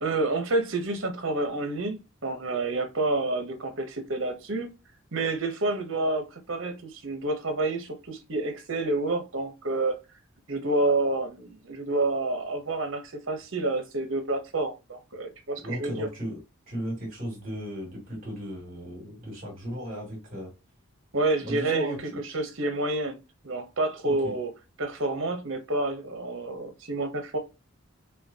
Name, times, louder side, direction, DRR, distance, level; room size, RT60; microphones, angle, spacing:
voice 1, 0.0-4.7 5.1-10.0 10.5-16.1 21.1-21.9 22.3-23.2 23.4-24.5 24.8-27.4, right 2 dB, 65° right, 1.0 m, -28 dB
voice 2, 15.6-16.4 16.7-20.5 21.4-22.2 24.0-24.4, equal, 40° right, 2.6 m, -36 dB
5.7 x 2.3 x 2.8 m
head